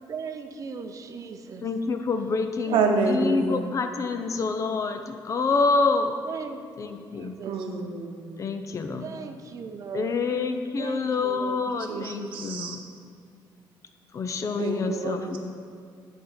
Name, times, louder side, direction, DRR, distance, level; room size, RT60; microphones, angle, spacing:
voice 1, 0.1-1.7 2.7-3.5 4.0-4.1 6.2-7.6 9.0-10.1 10.8-11.6, right 5 dB, 40° right, 7 dB, 0.6 m, -38 dB
voice 2, 1.6-2.8 3.1-6.1 6.8-7.4 8.4-9.1 9.9-12.8 14.1-15.4, left 4 dB, 40° left, 7 dB, 0.5 m, -27 dB
voice 3, 2.7-3.6 7.4-8.4 11.9-12.8 14.6-15.4, right 4 dB, 90° right, 3 dB, 0.8 m, -27 dB
9.1 x 3.6 x 5.6 m, 2.4 s
cardioid pair, 135°, 8 cm